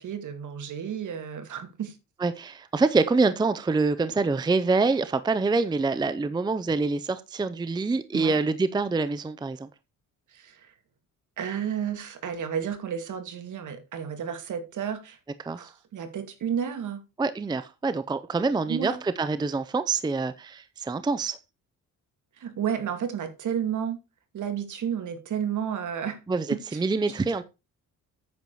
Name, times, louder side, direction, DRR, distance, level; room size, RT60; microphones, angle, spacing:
voice 1, 0.0-1.9 8.1-8.4 10.3-10.7 11.4-15.2 15.6-17.0 18.7-19.0 22.4-24.0 24.3-26.2 26.5-26.8 27.1-27.2, right 8 dB, 65° right, 2.3 m, -32 dB
voice 2, 2.2-9.7 15.4-15.7 17.2-21.4 26.3-26.5 26.7-27.4, right 3 dB, 15° right, 0.5 m, -26 dB
9.4 x 7.2 x 4.6 m
cardioid pair, 140°, 33 cm